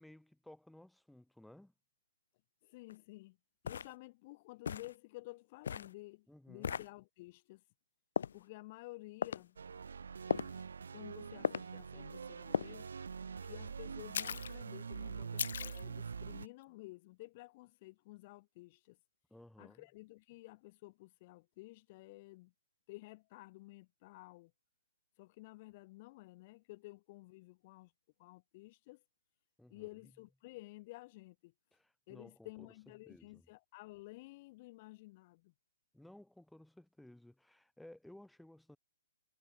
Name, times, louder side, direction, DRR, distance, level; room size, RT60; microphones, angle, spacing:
voice 1, 0.0-1.7 6.3-6.8 19.3-19.8 29.6-29.9 31.7-32.7 33.0-33.5 35.9-38.8, left 1 dB, ahead, 3.2 m, -58 dB
voice 2, 2.6-3.4 3.6-7.7 8.3-9.6 10.9-12.9 13.4-19.0 19.6-22.5 22.9-24.5 25.2-27.9 28.2-29.0 29.7-31.5 32.1-35.5, left 21 dB, 30° left, 1.1 m, -53 dB
sound 1, 2.9-3.0 3.7-3.9 4.7-4.9 5.6-5.9 6.6-6.9 8.2-8.4 9.2-9.4 10.3-10.6 11.4-11.7 12.5-12.7 14.1-14.5 15.4-15.8, left 7 dB, 60° left, 1.2 m, -36 dB
sound 2, 9.6-16.5, right 6 dB, 85° right, 0.4 m, -45 dB
hypercardioid pair, 170°, 0 cm